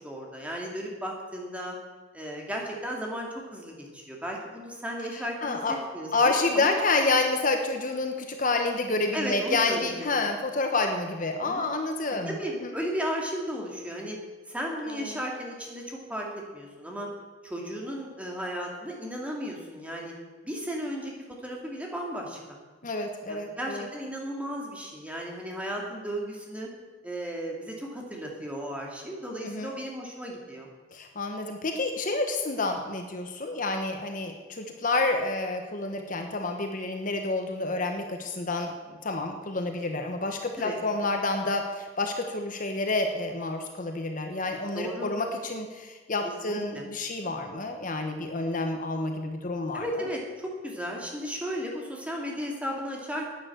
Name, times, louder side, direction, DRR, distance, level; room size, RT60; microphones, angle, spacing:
voice 1, 0.0-1.8 2.1-5.6 5.9-6.8 9.1-10.1 11.3-11.6 12.3-14.2 14.5-16.3 16.5-17.1 17.4-20.1 20.4-21.1 21.4-22.6 23.3-26.7 27.0-30.7 40.6-40.8 44.7-45.1 46.4-46.8 49.7-53.3, equal, 5° right, -1 dB, 2.5 m, -35 dB
voice 2, 5.1-5.7 6.1-12.7 14.9-15.2 22.8-23.9 29.4-29.7 30.9-50.1, left 3 dB, 45° left, 5 dB, 1.1 m, -29 dB
11.0 x 9.3 x 7.8 m, 1.3 s
head